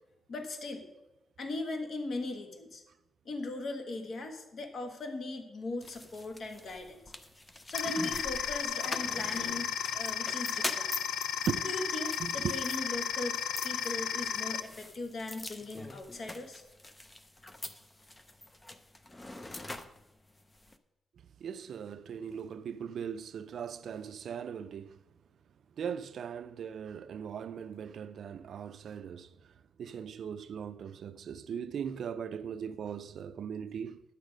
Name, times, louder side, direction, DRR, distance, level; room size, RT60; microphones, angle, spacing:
voice 1, 0.3-0.9 1.4-2.8 3.2-7.0 7.7-10.9 11.6-16.6, left 2 dB, 50° left, 1.3 m, -39 dB
sound 1, 5.8-20.8, left 1 dB, 15° left, 0.5 m, -44 dB
sound 2, 7.7-14.6, left 8 dB, 90° left, 0.4 m, -34 dB
voice 2, 12.2-12.5 21.4-25.0 25.8-29.5 29.8-34.0, right 7 dB, 65° right, 0.4 m, -39 dB
10.5 x 8.3 x 5.1 m
wide cardioid pair, 150°, 0 cm